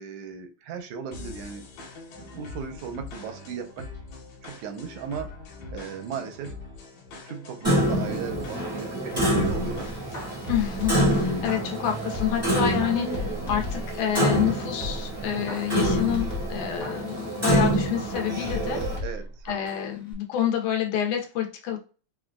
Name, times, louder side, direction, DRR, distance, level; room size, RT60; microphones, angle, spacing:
voice 1, 0.0-1.7 2.2-3.9 4.4-5.3 5.7-6.6 7.3-10.0 19.0-19.5, right 7 dB, 85° right, 5 dB, 2.0 m, -36 dB
sound 1, 1.1-11.8, left 4 dB, 70° left, 2.3 m, -43 dB
Clock, 7.6-19.0, right 1 dB, 15° right, 0.5 m, -27 dB
sound 2, 9.5-12.5 12.8-14.5 14.8-17.8 18.1-19.8 20.1-20.2, left 2 dB, 55° left, 0.8 m, -35 dB
voice 2, 10.5-19.0 19.5-21.8, left 9 dB, 85° left, 2 dB, 2.4 m, -28 dB
5.8 x 2.5 x 2.3 m, 0.35 s
omnidirectional pair, 3.4 m